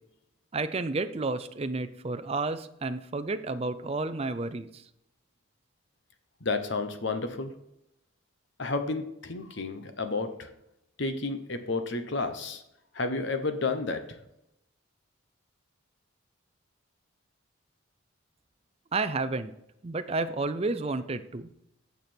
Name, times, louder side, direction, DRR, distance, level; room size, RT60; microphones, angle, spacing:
voice 1, 0.5-4.8 18.9-19.5 19.8-21.5, right 3 dB, 30° right, 10 dB, 0.5 m, -31 dB
voice 2, 6.4-7.5 8.6-10.5 11.0-12.6 12.9-14.0, left 3 dB, 55° left, 8 dB, 1.0 m, -31 dB
9.2 x 6.8 x 4.4 m, 0.82 s
head